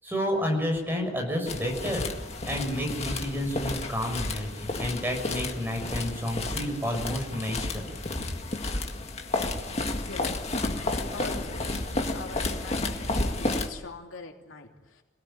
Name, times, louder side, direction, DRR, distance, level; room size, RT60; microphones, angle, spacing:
voice 1, 0.0-2.1 2.5-7.9, equal, 10° right, 1 dB, 6.5 m, -30 dB
sound 1, 1.5-13.7, left 2 dB, 35° left, 2.0 m, -31 dB
voice 2, 9.9-10.4 10.8-15.0, left 3 dB, 90° left, 2 dB, 3.1 m, -43 dB
26.5 x 18.0 x 8.9 m, 1.1 s
head